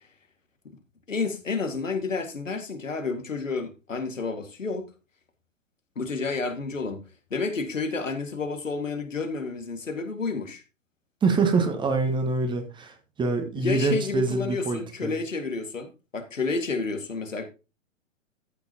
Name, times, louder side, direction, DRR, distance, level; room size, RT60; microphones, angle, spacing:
voice 1, 1.1-4.9 6.0-10.6 13.6-17.5, left 4 dB, 75° left, 2.0 m, -30 dB
voice 2, 11.2-15.1, right 4 dB, 10° right, 1.5 m, -25 dB
14.5 x 6.2 x 2.9 m
figure-of-eight pair, 110°, 39 cm